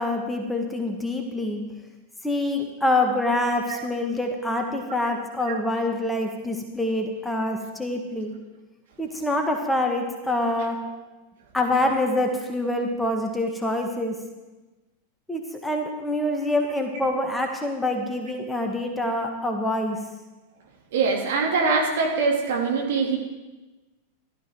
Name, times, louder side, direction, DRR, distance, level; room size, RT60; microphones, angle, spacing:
voice 1, 0.0-1.6 2.2-8.3 9.0-10.8 11.5-14.2 15.3-20.0, left 1 dB, 5° left, 3 dB, 1.7 m, -26 dB
voice 2, 20.9-23.2, right 4 dB, 55° right, 0 dB, 3.0 m, -23 dB
15.0 x 12.5 x 4.7 m, 1.1 s
figure-of-eight pair, 90°, 0 cm